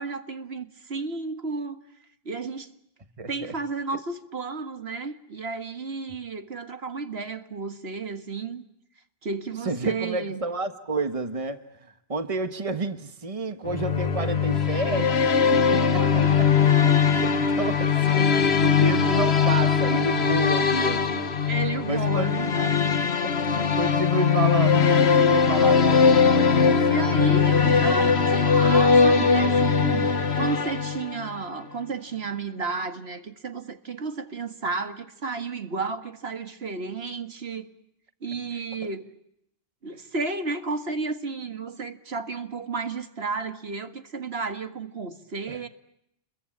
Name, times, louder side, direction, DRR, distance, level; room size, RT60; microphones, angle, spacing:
voice 1, 0.0-1.8 2.3-2.7 3.3-8.6 9.2-10.4 15.5-16.4 21.5-22.8 26.9-37.7 38.2-39.0 39.8-45.7, right 4 dB, 75° right, 8 dB, 2.0 m, -32 dB
voice 2, 3.2-3.5 9.6-11.6 12.1-16.5 17.1-21.3 21.9-22.3 23.2-27.4 38.5-38.6 45.5-45.7, right 2 dB, 35° right, 9 dB, 1.5 m, -30 dB
sound 1, 13.6-31.4, left 6 dB, 85° left, 1.6 m, -21 dB
29.5 x 22.5 x 8.7 m, 0.78 s
omnidirectional pair, 1.1 m